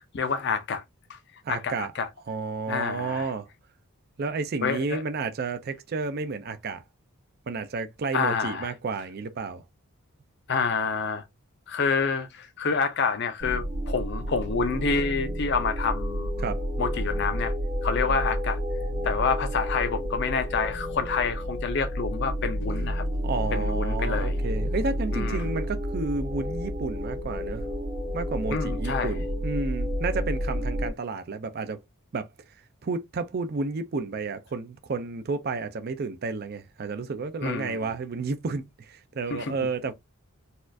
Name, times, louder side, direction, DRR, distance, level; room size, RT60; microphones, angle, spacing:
voice 1, 0.1-0.8 1.1-1.2 1.5-2.1 2.7-3.3 4.6-5.0 8.1-8.7 10.5-11.2 11.7-16.5 16.8-17.5 17.8-18.6 19.0-23.0 23.5-24.4 25.1-25.5 28.5-29.2 37.4-37.9 39.3-39.5, left 5 dB, 50° left, 0.5 m, -28 dB
voice 2, 1.4-1.9 2.3-3.5 4.2-6.8 7.5-9.6 16.4-16.6 23.2-27.6 28.1-31.8 32.1-32.3 32.8-39.9, right 4 dB, 45° right, 0.4 m, -31 dB
sound 1, 13.4-30.9, equal, 60° right, 1.3 m, -30 dB
4.1 x 2.4 x 2.5 m
head